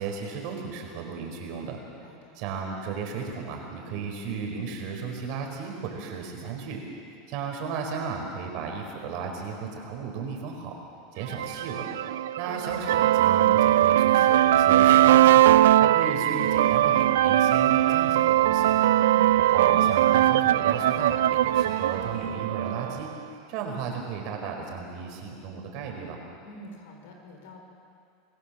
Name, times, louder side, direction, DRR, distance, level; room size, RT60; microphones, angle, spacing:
voice 1, 0.0-1.8 2.3-6.8 7.3-10.7 11.1-11.9 12.4-18.7 19.4-23.1 23.5-26.2, right 5 dB, 60° right, 2 dB, 4.8 m, -34 dB
voice 2, 2.0-2.4 18.9-19.7 26.4-27.6, equal, 80° left, 2 dB, 5.0 m, -46 dB
sound 1, 11.3-23.1, right 13 dB, 90° right, 0.4 m, -20 dB
sound 2, 12.7-22.3, left 3 dB, 35° left, 4.8 m, -49 dB
25.0 x 16.0 x 7.5 m, 2.5 s
supercardioid pair, 125°, 0 cm